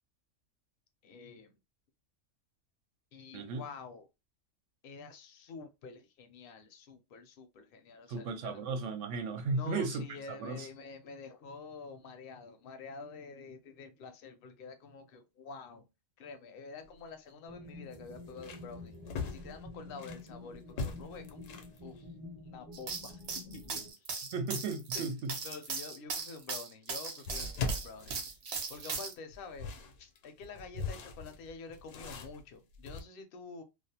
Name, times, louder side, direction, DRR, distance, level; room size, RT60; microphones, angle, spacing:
voice 1, 1.0-1.5 3.1-4.1 4.8-8.6 9.5-15.8 16.2-18.9 19.2-21.4 21.8-22.0 22.5-23.9 24.9-25.0 25.4-28.1 28.7-29.7 30.0-33.6, left 4 dB, 60° left, 0.6 m, -48 dB
voice 2, 8.1-10.7 24.3-25.4, right 3 dB, 80° right, 0.9 m, -35 dB
sound 1, 16.7-16.9 17.3-17.4 17.9-20.3 20.7-21.8 26.0-26.1 27.3-28.8 29.3-33.0, left 4 dB, 85° left, 1.0 m, -40 dB
sound 2, 17.5-23.9, left 2 dB, 35° right, 0.6 m, -49 dB
sound 3, 22.7-29.1, right 5 dB, 60° right, 0.9 m, -38 dB
2.4 x 2.1 x 2.7 m
omnidirectional pair, 1.3 m